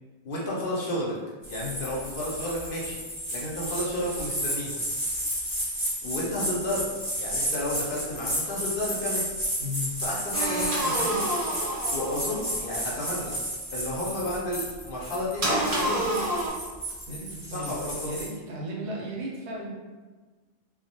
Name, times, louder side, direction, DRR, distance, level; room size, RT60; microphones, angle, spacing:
voice 1, 0.2-1.1 1.5-3.0 3.3-4.8 6.0-9.3 10.0-11.2 11.9-13.4 13.7-16.1 17.5-18.1, left 1 dB, 60° left, -5 dB, 0.7 m, -32 dB
sound 1, 1.4-18.3, equal, 10° left, 0.8 m, -32 dB
voice 2, 9.6-9.9 17.1-19.7, left 1 dB, 80° right, -3 dB, 0.9 m, -35 dB
sound 2, 10.3-12.8 15.4-16.5, right 1 dB, 45° right, 0.5 m, -28 dB
2.2 x 2.0 x 2.7 m, 1.3 s
omnidirectional pair, 1.1 m